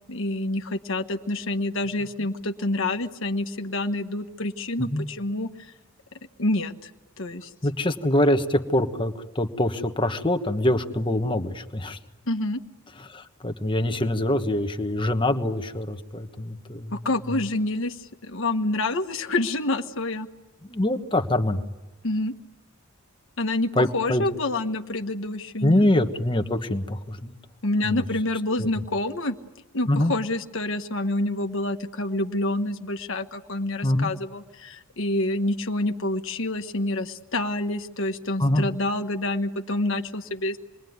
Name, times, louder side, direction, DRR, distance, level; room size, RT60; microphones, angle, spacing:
voice 1, 0.1-5.7 6.4-6.9 7.2-7.5 12.3-12.6 16.9-20.3 22.0-22.3 23.4-25.9 27.6-29.4 29.7-40.6, left 2 dB, 65° left, 6 dB, 1.4 m, -27 dB
voice 2, 7.6-12.0 13.0-16.9 17.3-17.4 20.6-21.6 23.7-24.2 25.6-27.3 27.8-28.0 28.6-28.8 29.9-30.1 33.8-34.1 38.4-38.7, left 1 dB, 25° left, 7 dB, 1.3 m, -24 dB
28.0 x 22.0 x 9.5 m, 1.1 s
head